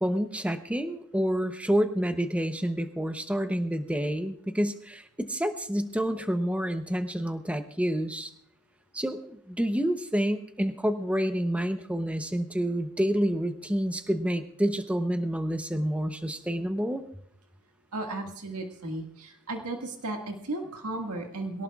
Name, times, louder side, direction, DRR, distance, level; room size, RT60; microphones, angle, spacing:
voice 1, 0.0-8.3 8.9-17.0, equal, 5° right, 8 dB, 0.7 m, -28 dB
voice 2, 17.9-21.6, right 2 dB, 85° right, 3 dB, 1.7 m, -35 dB
22.5 x 17.5 x 2.3 m, 0.69 s
head